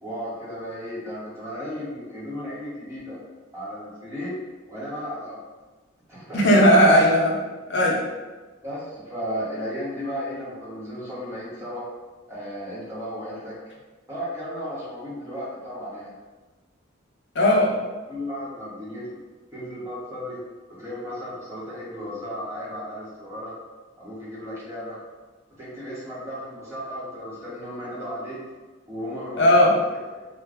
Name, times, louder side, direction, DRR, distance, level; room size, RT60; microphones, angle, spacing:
voice 1, 0.0-3.2 3.5-4.4 4.7-5.4 6.1-6.7 8.6-11.8 12.3-13.5 14.1-16.1 18.1-19.1 19.5-20.4 20.7-23.5 24.0-25.0 25.6-28.4 28.9-29.8 30.1-30.3, equal, 15° right, -9 dB, 1.0 m, -34 dB
voice 2, 6.3-7.4 7.7-8.0 17.3-17.7 29.4-29.7, equal, 60° left, -2 dB, 0.6 m, -16 dB
2.5 x 2.2 x 3.4 m, 1.3 s
head